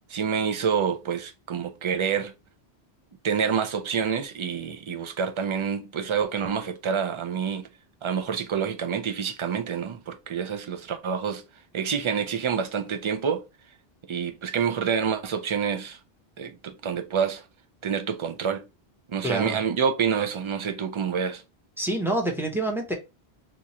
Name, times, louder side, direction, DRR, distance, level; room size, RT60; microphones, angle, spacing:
voice 1, 0.1-2.3 3.2-7.7 8.0-11.4 11.7-13.4 14.0-16.0 16.4-17.4 17.8-18.6 19.1-21.4, right 7 dB, 50° right, 0.3 m, -27 dB
voice 2, 19.2-19.6 21.8-22.9, right 1 dB, 5° right, 0.6 m, -27 dB
3.0 x 2.4 x 4.0 m
omnidirectional pair, 1.1 m